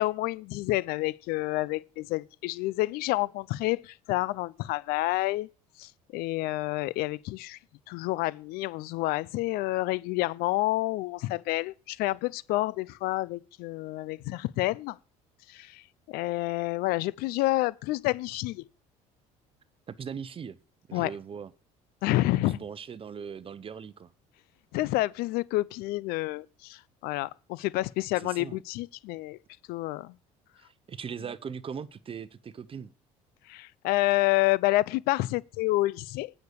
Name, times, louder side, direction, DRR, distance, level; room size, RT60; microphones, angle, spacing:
voice 1, 0.0-5.5 5.8-7.6 7.9-15.0 15.5-18.7 20.9-21.1 22.0-22.6 24.7-29.4 29.7-30.1 33.5-36.3, left 18 dB, 75° left, 0.5 m, -29 dB
voice 2, 19.9-20.6 20.9-21.5 22.5-24.1 28.2-28.6 30.6-32.9, right 7 dB, 35° right, 0.8 m, -39 dB
9.4 x 6.6 x 6.7 m
supercardioid pair, 80°, 16 cm